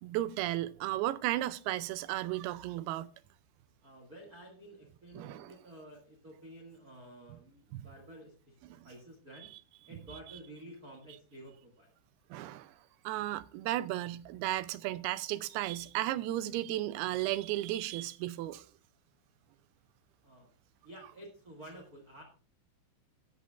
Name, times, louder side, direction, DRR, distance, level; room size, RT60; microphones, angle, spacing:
voice 1, 0.0-3.1 5.2-5.5 7.7-7.9 8.7-8.9 12.3-12.8 13.0-18.7, right 15 dB, 85° right, 2.6 m, -34 dB
voice 2, 3.8-9.5 9.9-11.9 20.2-20.5 20.8-22.2, right 1 dB, 35° right, 1.7 m, -51 dB
13.5 x 10.0 x 2.4 m
omnidirectional pair, 4.4 m